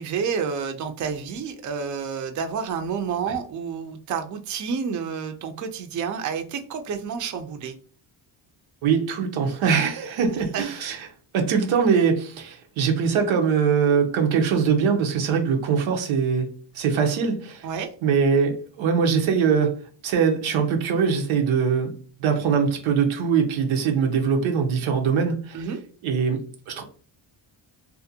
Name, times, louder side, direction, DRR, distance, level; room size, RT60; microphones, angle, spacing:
voice 1, 0.0-7.8 10.5-10.6 17.6-17.9 25.5-25.8, right 6 dB, 40° right, 0.4 m, -29 dB
voice 2, 8.8-11.1 11.3-16.5 16.7-17.7 18.0-19.8 20.0-21.9 22.2-25.7 26.0-26.8, right 6 dB, 90° right, 0.6 m, -22 dB
2.5 x 2.1 x 2.6 m
cardioid pair, 80°, 47 cm